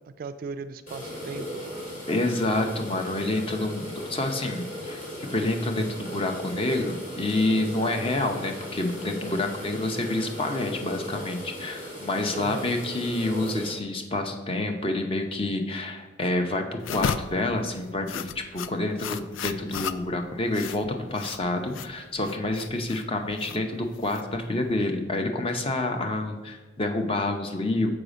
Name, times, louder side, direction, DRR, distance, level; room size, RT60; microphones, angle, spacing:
voice 1, 0.0-1.9 12.3-12.7, right 4 dB, 45° right, 11 dB, 0.3 m, -38 dB
sound 1, 0.9-13.7, equal, 45° left, 2.3 m, -37 dB
voice 2, 2.1-27.9, left 2 dB, 30° left, 5 dB, 0.6 m, -28 dB
sound 2, 16.8-24.7, left 7 dB, 80° left, 0.3 m, -35 dB
6.7 x 4.9 x 5.0 m, 1.2 s
head